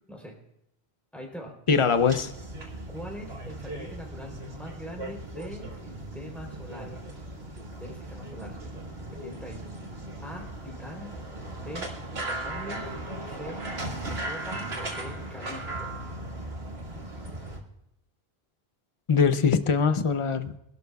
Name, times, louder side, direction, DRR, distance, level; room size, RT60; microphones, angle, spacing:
voice 1, 1.1-1.8 2.9-7.0 7.8-8.6 9.1-9.7 10.2-11.1 11.6-11.9 12.3-12.9 13.2-13.6 14.1-15.9, equal, ahead, 0 dB, 3.5 m, -42 dB
voice 2, 1.7-2.3 19.1-20.5, left 5 dB, 35° left, 10 dB, 0.7 m, -22 dB
sound 1, 1.9-17.6, right 2 dB, 75° right, 2.5 m, -37 dB
25.0 x 12.0 x 2.3 m, 0.82 s
omnidirectional pair, 1.1 m